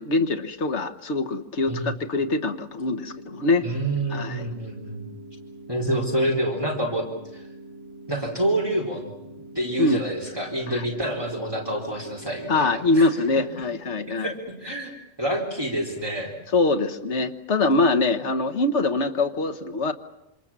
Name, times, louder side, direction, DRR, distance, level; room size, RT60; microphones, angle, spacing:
voice 1, 0.0-3.7 4.1-4.5 9.8-10.0 12.5-14.3 16.5-19.9, left 2 dB, 75° left, 7 dB, 1.6 m, -23 dB
sound 1, 2.9-12.9, right 1 dB, 55° right, 7.7 m, -44 dB
voice 2, 3.6-5.0 5.7-7.0 7.3-7.5 8.1-9.1 9.6-13.1 14.1-14.9 15.2-16.3, right 1 dB, 20° right, -1 dB, 3.9 m, -27 dB
27.5 x 27.0 x 7.4 m, 0.86 s
omnidirectional pair, 1.2 m